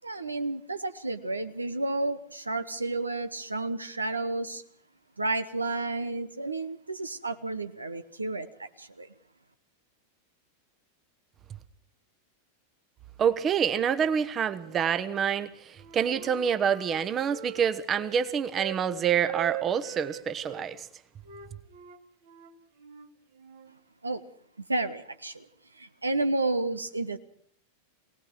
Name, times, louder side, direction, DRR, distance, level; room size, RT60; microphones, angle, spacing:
voice 1, 0.0-4.6 5.2-9.1 24.0-24.2 24.6-25.5 25.7-27.2, right 2 dB, 80° right, 0.9 m, -31 dB
voice 2, 13.2-20.9, right 8 dB, 25° right, 1.1 m, -27 dB
Wind instrument woodwind instrument, 14.6-15.4 15.7-18.8 19.2-20.7 21.2-23.7, right 10 dB, 60° right, 2.3 m, -41 dB
23.0 x 18.5 x 6.1 m
figure-of-eight pair, 90°, 0 cm